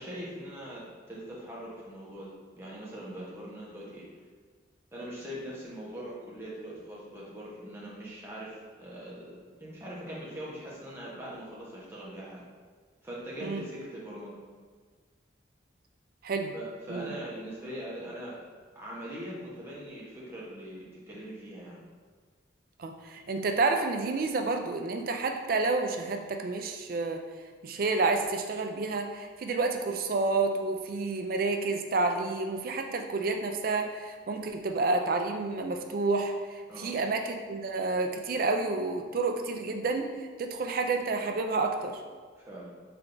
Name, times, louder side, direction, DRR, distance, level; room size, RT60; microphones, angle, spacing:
voice 1, 0.0-4.0 4.9-12.4 13.0-14.4 16.5-18.4 18.7-21.8 36.7-36.9 42.3-42.7, right 1 dB, 15° right, -6 dB, 0.9 m, -41 dB
voice 2, 22.8-27.2 27.6-40.1 40.4-42.0, right 3 dB, 50° right, 5 dB, 0.4 m, -29 dB
3.6 x 3.3 x 3.8 m, 1.5 s
head